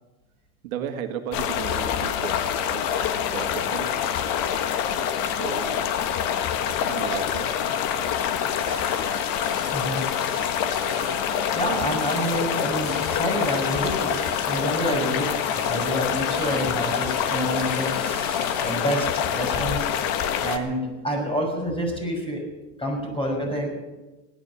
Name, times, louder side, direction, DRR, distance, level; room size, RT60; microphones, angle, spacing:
voice 1, 0.6-3.9 5.2-5.8 6.9-7.6, right 9 dB, 75° right, 6 dB, 1.7 m, -35 dB
sound 1, 1.3-20.6, left 9 dB, 55° left, 1.5 m, -26 dB
sound 2, 7.7-18.7, right 10 dB, 45° right, 2.8 m, -45 dB
voice 2, 9.7-10.4 11.5-14.1 14.4-19.9 20.4-22.4 22.8-23.7, equal, 15° left, 2 dB, 6.0 m, -28 dB
18.0 x 11.0 x 7.1 m, 1.1 s
hypercardioid pair, 100°, 41 cm